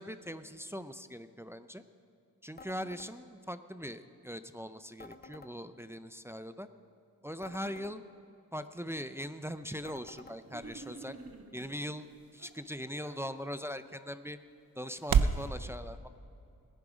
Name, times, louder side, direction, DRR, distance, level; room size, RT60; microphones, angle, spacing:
voice 1, 0.0-1.8 2.4-6.7 7.2-8.0 8.5-11.2 11.5-12.1 12.3-14.4 14.8-16.1, equal, 5° right, 10 dB, 0.4 m, -41 dB
sound 1, 2.6-3.1 5.0-5.5 7.4-8.0 9.8-10.4, left 3 dB, 30° left, 0.7 m, -51 dB
sound 2, 9.2-15.5, right 7 dB, 90° right, 0.6 m, -36 dB
sound 3, 10.4-11.8 12.4-13.2, right 3 dB, 40° right, 1.5 m, -49 dB
19.5 x 10.5 x 5.0 m, 2.7 s
wide cardioid pair, 100°, 35 cm